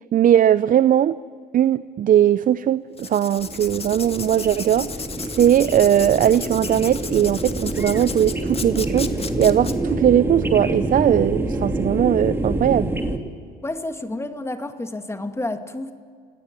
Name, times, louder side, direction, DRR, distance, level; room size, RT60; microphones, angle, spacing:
voice 1, 0.1-1.2 1.5-4.9 5.2-12.9, right 10 dB, 45° right, 17 dB, 0.6 m, -19 dB
Writing, 2.9-9.7, left 5 dB, 30° left, 2.1 m, -34 dB
sound 1, 3.4-13.2, right 2 dB, 10° right, 2.8 m, -27 dB
voice 2, 13.6-15.9, left 2 dB, 15° left, 8 dB, 2.2 m, -30 dB
30.0 x 17.5 x 10.0 m, 2.2 s
supercardioid pair, 80°, 20 cm